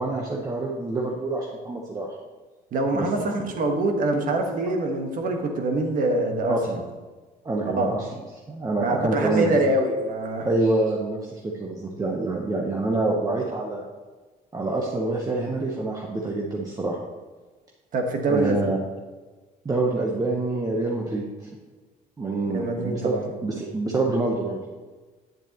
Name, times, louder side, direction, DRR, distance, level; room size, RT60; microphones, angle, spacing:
voice 1, 0.0-2.2 2.9-3.1 6.5-6.6 7.4-8.0 8.5-9.6 10.4-13.8 14.5-17.0 18.2-18.8 19.6-21.5 22.2-24.6, right 2 dB, 20° right, -1 dB, 1.0 m, -26 dB
voice 2, 2.7-6.8 7.8-8.0 8.8-10.5 17.9-18.7 22.4-23.3, right 2 dB, 55° right, 3 dB, 1.4 m, -24 dB
9.2 x 7.8 x 3.0 m, 1.3 s
cardioid pair, 110°, 17 cm